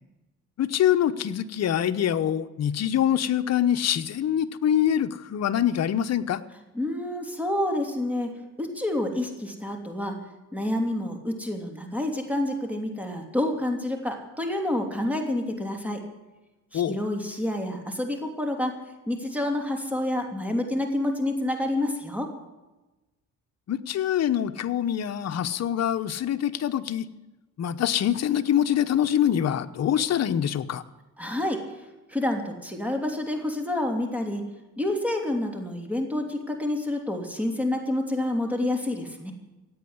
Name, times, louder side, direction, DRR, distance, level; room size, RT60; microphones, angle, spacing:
voice 1, 0.6-6.4 16.7-17.0 23.7-27.1 27.6-30.8, left 10 dB, 55° left, 9 dB, 1.0 m, -24 dB
voice 2, 6.7-10.2 10.5-16.0 16.7-18.7 19.1-22.3 31.2-34.4 34.8-39.3, left 1 dB, 5° right, 3 dB, 3.0 m, -28 dB
16.5 x 8.8 x 9.7 m, 1.1 s
cardioid pair, 90°, 30 cm